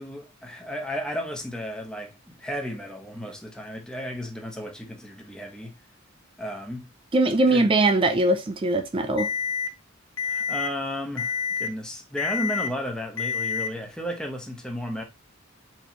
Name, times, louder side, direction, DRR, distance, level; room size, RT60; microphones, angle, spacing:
voice 1, 0.0-5.7 6.4-6.9 7.5-7.7 10.2-15.0, equal, 5° left, 0.8 m, -33 dB
voice 2, 7.1-9.3, right 2 dB, 25° right, 0.4 m, -21 dB
Alarm, 9.2-9.7 10.2-10.7 11.2-11.7 12.2-12.7 13.2-13.7, left 6 dB, 75° left, 1.0 m, -28 dB
4.3 x 3.1 x 2.8 m
head